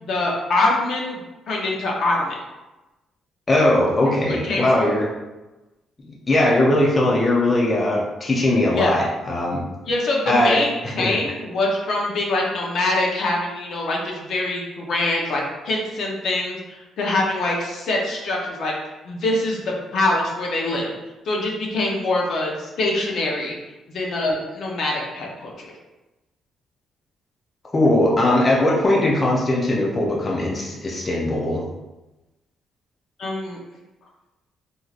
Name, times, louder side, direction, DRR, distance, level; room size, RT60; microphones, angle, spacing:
voice 1, 0.0-1.2 1.5-2.4 4.3-4.6 8.7-9.0 9.9-18.7 19.0-20.9 21.2-23.6 23.9-25.7 33.2-33.6, left 2 dB, 65° left, -2 dB, 0.7 m, -24 dB
voice 2, 3.5-5.1 6.3-9.6 10.3-10.6 10.8-11.1 27.7-31.6, left 1 dB, 30° left, -2 dB, 0.5 m, -19 dB
3.2 x 2.6 x 2.4 m, 1.1 s
cardioid pair, 90°, 0 cm